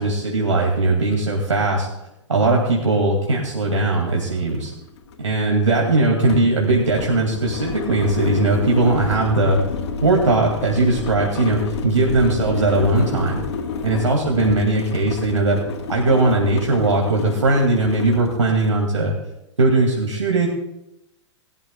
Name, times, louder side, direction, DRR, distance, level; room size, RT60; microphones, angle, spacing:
voice 1, 0.0-1.9 2.3-4.7 5.2-9.6 10.0-13.4 13.8-15.6 15.9-19.1 19.6-20.5, right 2 dB, 85° right, -1 dB, 2.5 m, -19 dB
sound 1, 3.6-3.7 4.0-18.8, left 5 dB, 60° left, 1.7 m, -30 dB
21.5 x 12.5 x 2.4 m, 0.88 s
figure-of-eight pair, 105°, 16 cm